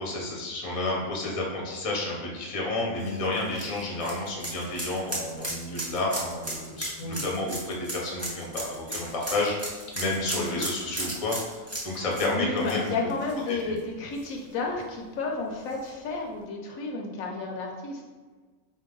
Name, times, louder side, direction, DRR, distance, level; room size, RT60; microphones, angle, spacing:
voice 1, 0.0-9.5 9.9-12.9 13.5-13.7, left 2 dB, 30° left, -3 dB, 0.7 m, -30 dB
sound 1, 3.0-13.8 14.2-14.3 15.7-15.8, right 1 dB, 20° right, 0.4 m, -35 dB
voice 2, 10.4-11.0 12.2-18.0, left 3 dB, 75° left, 0 dB, 1.0 m, -32 dB
4.2 x 2.6 x 3.7 m, 1.4 s
omnidirectional pair, 1.5 m